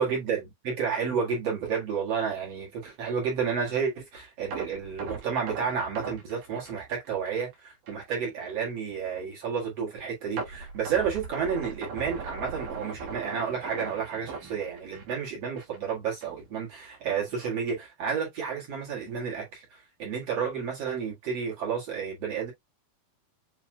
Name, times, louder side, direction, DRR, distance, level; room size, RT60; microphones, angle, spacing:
voice 1, 0.0-22.5, right 6 dB, 50° right, 2.4 m, -31 dB
sound 1, 4.5-7.5 7.9-8.0 8.5-8.6 10.4-15.3 15.6-15.8 16.2-16.3, right 4 dB, 70° right, 3.1 m, -39 dB
7.5 x 3.1 x 2.2 m
omnidirectional pair, 4.2 m